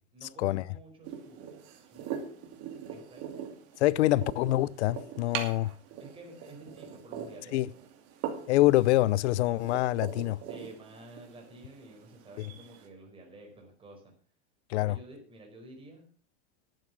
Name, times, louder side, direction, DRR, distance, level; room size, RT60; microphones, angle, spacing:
voice 1, 0.1-2.6 2.9-3.3 4.0-4.2 6.0-7.8 10.4-14.0 14.8-16.0, right 1 dB, 15° right, 4.9 m, -51 dB
sound 1, 1.0-12.9, right 8 dB, 45° right, 2.5 m, -42 dB
voice 2, 3.8-5.7 7.5-7.7 8.5-10.4 14.7-15.0, left 16 dB, 75° left, 0.6 m, -25 dB
12.0 x 9.1 x 6.0 m
supercardioid pair, 145°, 34 cm